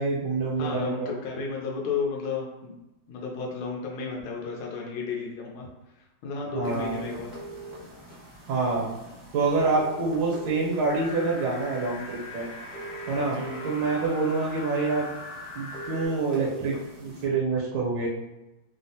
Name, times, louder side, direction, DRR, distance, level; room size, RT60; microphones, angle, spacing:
voice 1, 0.0-1.1 6.5-7.0 8.5-8.9 9.3-12.5 13.1-13.4 13.6-15.1 15.5-18.1, right 3 dB, 75° right, -3 dB, 1.4 m, -26 dB
voice 2, 0.6-2.7 3.1-5.7 6.0-7.3 13.3-13.7, left 4 dB, 90° left, -2 dB, 1.4 m, -33 dB
sound 1, 6.6-17.2, right 2 dB, ahead, 0.6 m, -43 dB
sound 2, 10.9-16.1, left 3 dB, 70° left, 1.3 m, -41 dB
3.5 x 2.1 x 2.7 m, 0.97 s
omnidirectional pair, 2.2 m